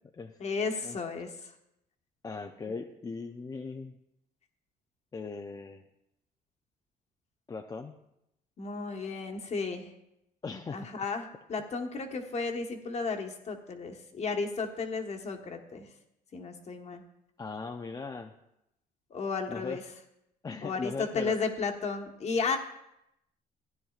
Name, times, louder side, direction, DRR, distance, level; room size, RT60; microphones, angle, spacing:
voice 1, 0.4-1.3 8.6-9.9 10.7-15.8 16.3-17.0 19.1-19.8 20.6-22.6, left 4 dB, 40° left, 3 dB, 1.3 m, -33 dB
voice 2, 2.2-4.0 5.1-5.8 7.5-8.0 10.4-10.8 17.4-18.3 19.5-19.8 20.4-21.4, left 4 dB, 20° left, 4 dB, 0.5 m, -39 dB
15.5 x 10.0 x 2.4 m, 0.83 s
cardioid pair, 110°, 17 cm